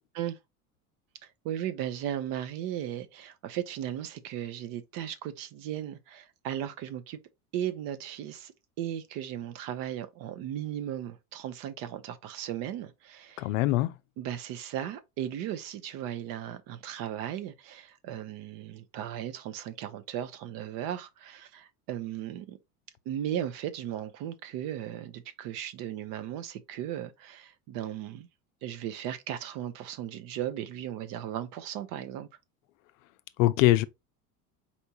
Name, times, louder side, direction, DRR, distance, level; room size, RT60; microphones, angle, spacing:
voice 1, 1.4-7.2 7.5-13.5 14.2-22.6 23.1-28.3 28.6-32.3, right 11 dB, 50° right, 0.7 m, -36 dB
voice 2, 13.4-13.9 33.4-33.8, left 16 dB, 55° left, 0.5 m, -22 dB
4.3 x 3.3 x 2.8 m
hypercardioid pair, 75°, 46 cm